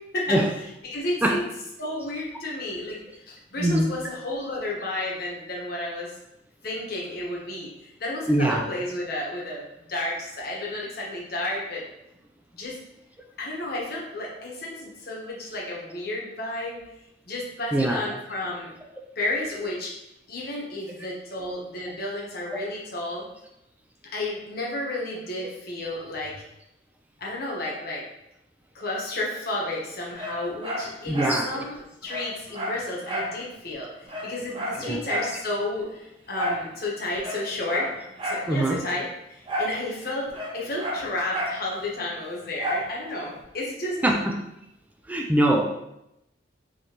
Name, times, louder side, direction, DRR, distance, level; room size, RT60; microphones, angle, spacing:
voice 1, 0.8-1.4 1.8-6.1 6.6-9.6 9.9-11.8 12.5-12.8 13.4-16.8 17.3-18.7 19.1-19.9 20.3-23.3 24.1-26.4 27.2-28.0 28.7-31.7 32.0-37.9 38.2-40.3 40.5-44.2, left 1 dB, 55° left, -3 dB, 1.1 m, -32 dB
voice 2, 3.6-3.9 8.3-8.6 17.7-18.0 22.5-22.6 31.1-31.6 34.8-35.0 38.5-38.8 44.0-44.3 45.1-45.6, right 1 dB, 10° right, 1 dB, 0.3 m, -23 dB
Dog, 30.1-31.4 31.7-31.8 32.1-33.4 33.7-33.8 34.1-35.4 36.3-36.7 37.1-38.5 39.5-39.8 40.1-41.6 42.6-42.9 43.4-43.5, equal, 30° right, 0.7 m, -31 dB
5.0 x 3.0 x 2.9 m, 0.86 s
head